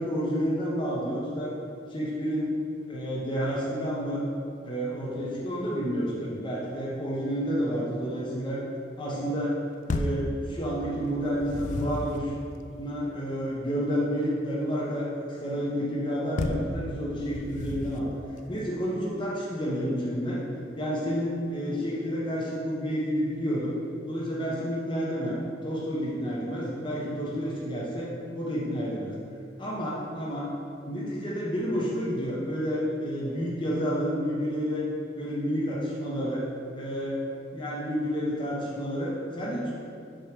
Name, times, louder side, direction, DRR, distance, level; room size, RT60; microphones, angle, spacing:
voice 1, 0.0-1.5 1.9-2.5 2.9-4.2 4.6-8.6 9.0-9.5 9.9-12.3 12.8-15.1 15.4-18.1 18.5-20.4 20.8-23.7 24.1-29.2 29.6-30.5 30.9-34.8 35.2-36.5 36.8-37.2 37.5-39.7, equal, 25° left, -6 dB, 0.8 m, -30 dB
sound 1, 9.9-10.3 11.2-12.2 16.4-16.7 17.3-18.1, left 2 dB, 40° left, 0.3 m, -31 dB
6.3 x 3.1 x 4.9 m, 2.4 s
head